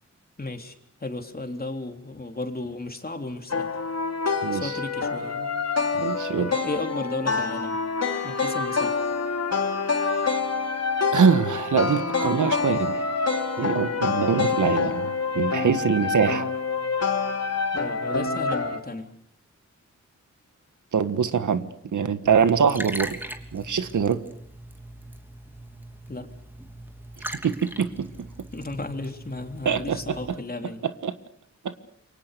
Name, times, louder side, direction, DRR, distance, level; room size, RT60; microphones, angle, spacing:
voice 1, 0.4-0.8 1.0-3.7 4.5-5.5 6.4-7.8 8.2-9.0 17.7-19.1 26.1-26.3 28.5-30.8, left 2 dB, 30° left, 5 dB, 3.6 m, -34 dB
sound 1, 3.5-18.8, left 4 dB, 60° left, 3.1 m, -26 dB
voice 2, 4.4-4.7 6.0-6.5 11.1-13.0 13.6-15.1 15.3-16.5 20.9-23.2 23.5-24.2 27.4-28.1 29.6-30.0 31.0-31.1 31.6-31.7, right 6 dB, 85° right, 11 dB, 1.6 m, -23 dB
Liquid, 22.2-30.3, right 1 dB, 5° right, 3.1 m, -40 dB
28.5 x 24.0 x 6.8 m, 0.69 s
cardioid pair, 65°, 30 cm